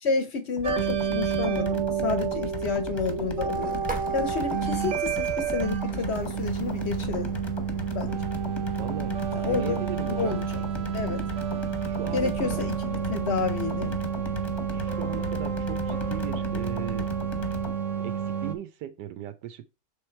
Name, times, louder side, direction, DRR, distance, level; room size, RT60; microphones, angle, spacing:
voice 1, 0.0-7.4 7.9-8.2 9.3-10.6 10.9-11.2 12.1-14.0, left 5 dB, 60° left, 0.7 m, -30 dB
sound 1, 0.6-17.8, left 2 dB, 25° left, 0.7 m, -37 dB
sound 2, 0.6-18.5, right 7 dB, 55° right, 1.0 m, -30 dB
sound 3, 3.5-13.6, right 3 dB, 5° right, 0.8 m, -45 dB
voice 2, 8.8-10.6 11.8-12.6 14.7-17.1 18.0-19.6, right 11 dB, 85° right, 1.2 m, -38 dB
6.8 x 3.3 x 4.4 m
omnidirectional pair, 1.8 m